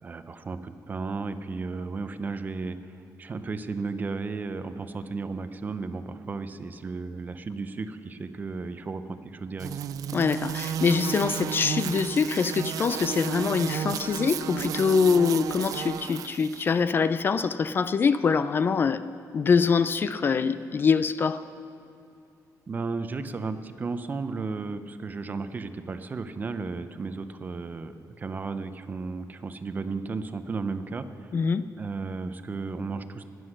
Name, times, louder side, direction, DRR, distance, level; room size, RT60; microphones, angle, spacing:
voice 1, 0.0-9.7 22.7-31.5 31.8-33.2, right 4 dB, 25° right, 10 dB, 0.6 m, -34 dB
sound 1, 9.6-16.7, right 9 dB, 65° right, 0.4 m, -33 dB
voice 2, 10.1-19.0 19.3-21.5 31.3-31.7, left 5 dB, 35° left, 13 dB, 0.3 m, -24 dB
19.5 x 7.8 x 6.4 m, 2.5 s
cardioid pair, 140°, 6 cm